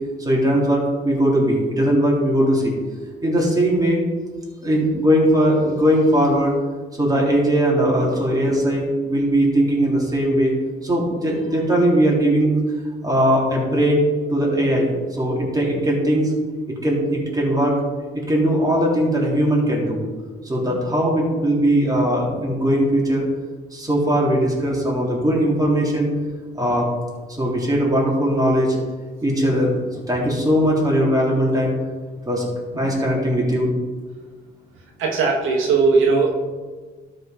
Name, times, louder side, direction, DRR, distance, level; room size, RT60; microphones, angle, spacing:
voice 1, 0.2-2.7 3.2-4.0 4.6-6.6 7.0-10.5 10.8-12.6 13.0-16.3 16.8-17.8 18.1-20.0 20.4-23.3 23.7-26.1 26.5-26.9 27.4-28.8 29.2-31.8 32.3-32.5 32.7-33.7, equal, 20° right, -3 dB, 3.5 m, -19 dB
voice 2, 35.0-36.3, right 4 dB, 85° right, -1 dB, 1.7 m, -18 dB
12.5 x 5.3 x 5.2 m, 1.4 s
cardioid pair, 90°, 20 cm